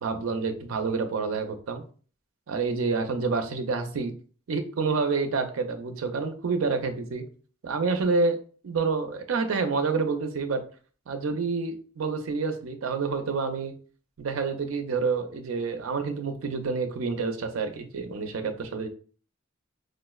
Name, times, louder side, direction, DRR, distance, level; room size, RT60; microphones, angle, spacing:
voice 1, 0.0-1.8 2.5-4.1 4.5-7.3 7.6-8.4 8.6-10.6 11.1-13.7 14.2-18.9, right 4 dB, 85° right, 6 dB, 0.5 m, -28 dB
4.9 x 2.0 x 2.3 m, 0.41 s
head